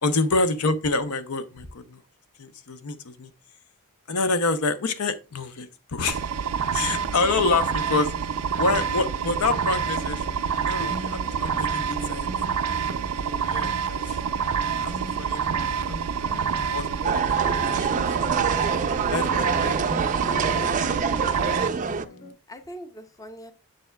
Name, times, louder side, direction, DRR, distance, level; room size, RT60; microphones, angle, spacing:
voice 1, 0.0-2.0 2.4-3.3 4.1-6.2 6.7-8.1 8.6-12.3 13.2-14.2 14.8-16.0 16.6-18.4 19.1-20.0, left 3 dB, 80° left, 0.7 m, -27 dB
sound 1, 6.1-21.7, right 7 dB, 90° right, 0.5 m, -27 dB
sound 2, 6.7-22.3, left 1 dB, 45° left, 3.8 m, -42 dB
sound 3, 17.0-22.1, right 5 dB, 35° right, 0.4 m, -26 dB
voice 2, 19.8-20.2 22.5-23.5, equal, 15° left, 0.6 m, -42 dB
7.5 x 6.9 x 2.2 m
head